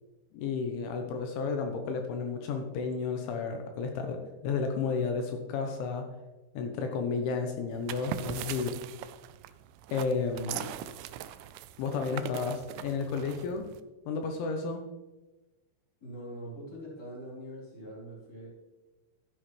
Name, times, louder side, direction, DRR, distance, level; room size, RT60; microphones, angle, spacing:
voice 1, 0.3-6.0 6.5-8.8 9.9-10.7 11.8-13.7 14.1-14.9, left 5 dB, 75° left, 4 dB, 3.1 m, -32 dB
sound 1, 7.7-13.8, right 12 dB, 85° right, 2.8 m, -41 dB
voice 2, 16.0-18.5, equal, 20° left, -5 dB, 4.1 m, -43 dB
13.5 x 8.7 x 3.3 m, 1.1 s
omnidirectional pair, 6.0 m